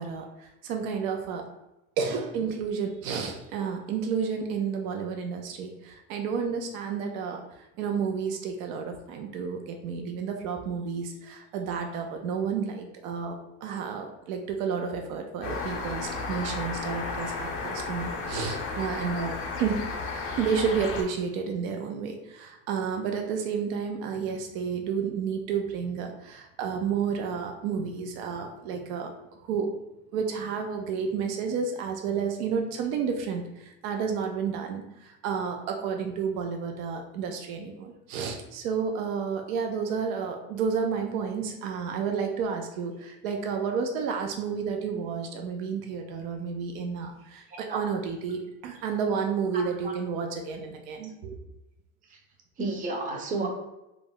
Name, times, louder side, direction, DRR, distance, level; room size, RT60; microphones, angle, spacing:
voice 1, 0.0-1.4 2.0-19.8 20.4-29.7 30.1-51.4, right 6 dB, 80° right, 3 dB, 0.5 m, -31 dB
sound 1, 15.4-21.0, left 3 dB, 35° left, 0.5 m, -33 dB
voice 2, 49.5-49.9 52.6-53.5, right 3 dB, 20° right, 1 dB, 0.5 m, -31 dB
2.3 x 2.0 x 3.6 m, 0.94 s
supercardioid pair, 120°, 41 cm